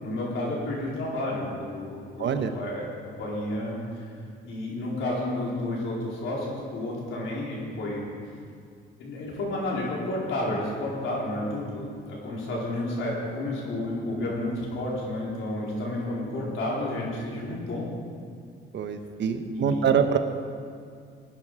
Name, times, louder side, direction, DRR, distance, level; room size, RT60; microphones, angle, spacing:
voice 1, 0.0-4.1 4.5-8.1 9.0-17.8 19.5-19.8, left 1 dB, 80° left, -4 dB, 4.4 m, -31 dB
voice 2, 2.2-2.5 18.7-20.2, right 7 dB, 65° right, 8 dB, 1.1 m, -24 dB
18.0 x 10.0 x 5.0 m, 2.3 s
cardioid pair, 90°, 20 cm